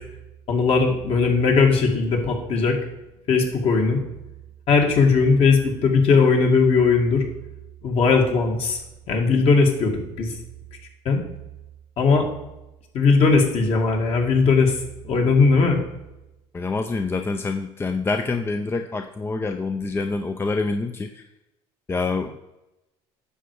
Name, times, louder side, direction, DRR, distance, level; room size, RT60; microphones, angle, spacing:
voice 1, 0.5-2.8 3.3-4.0 4.7-7.3 7.8-8.8 9.1-10.3 11.0-11.2 12.0-12.2 12.9-15.8, left 4 dB, 50° left, 2 dB, 2.4 m, -19 dB
voice 2, 16.5-21.2 21.9-22.3, left 3 dB, 20° left, 6 dB, 0.6 m, -26 dB
9.9 x 6.8 x 4.9 m, 0.93 s
cardioid pair, 110°, 13 cm